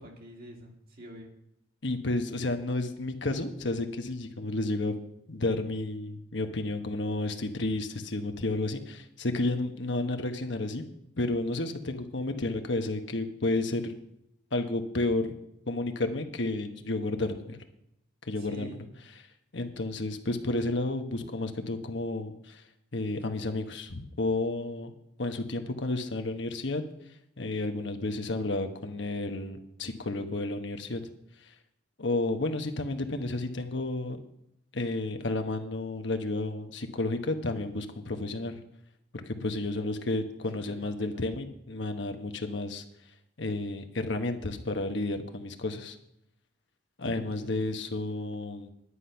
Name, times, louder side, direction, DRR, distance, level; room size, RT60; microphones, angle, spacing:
voice 1, 0.0-1.3 18.4-18.8 21.2-21.3 40.6-41.3 47.0-47.5, equal, 50° right, 0 dB, 2.4 m, -46 dB
voice 2, 1.8-5.0 5.3-10.8 11.2-14.0 14.5-15.4 15.7-17.6 18.2-18.8 19.5-22.6 22.9-24.9 25.2-26.8 27.4-31.0 31.4-31.5 32.0-34.2 34.7-38.6 39.1-42.8 43.4-46.0 47.0-48.7, left 2 dB, 65° left, 6 dB, 1.2 m, -31 dB
10.0 x 9.9 x 5.6 m, 0.78 s
head